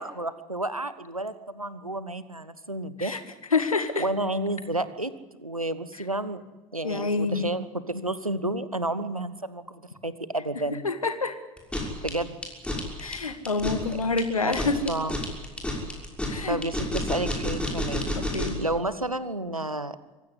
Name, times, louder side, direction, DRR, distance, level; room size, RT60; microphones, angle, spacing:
voice 1, 0.0-3.2 4.0-5.1 5.4-6.4 6.7-10.9 12.0-12.4 13.9-14.0 14.4-15.1 16.5-18.2 18.6-20.0, right 2 dB, 90° right, 14 dB, 1.2 m, -31 dB
voice 2, 3.5-4.0 6.8-7.5 10.8-11.4 13.0-14.9 16.3-16.6 18.2-18.6, left 4 dB, 80° left, 10 dB, 2.0 m, -27 dB
sound 1, 11.6-18.7, left 1 dB, 5° left, 6.1 m, -31 dB
24.5 x 16.5 x 9.9 m, 1.2 s
figure-of-eight pair, 70°, 17 cm